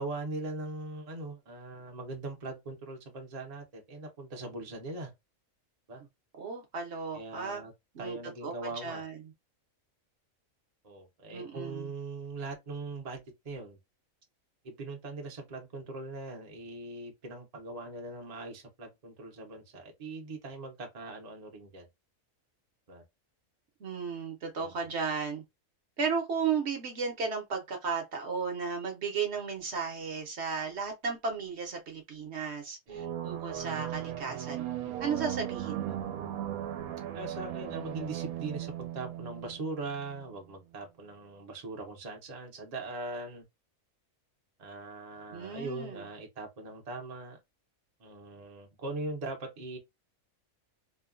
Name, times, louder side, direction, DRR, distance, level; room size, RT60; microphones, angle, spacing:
voice 1, 0.0-5.1 5.9-6.0 7.1-7.7 8.0-9.0 10.8-13.8 14.6-21.9 22.9-23.0 24.6-24.9 32.9-33.1 34.8-35.0 37.1-43.4 44.6-47.4 48.0-49.8, right 2 dB, 35° right, 0.7 m, -41 dB
voice 2, 6.4-7.7 7.9-8.2 8.4-8.5 8.8-9.2 11.3-11.9 23.8-25.4 26.0-34.6 35.0-36.0 45.3-46.1, right 5 dB, 55° right, 1.0 m, -34 dB
sound 1, 32.9-40.3, right 11 dB, 85° right, 1.0 m, -37 dB
3.0 x 2.2 x 2.4 m
omnidirectional pair, 1.5 m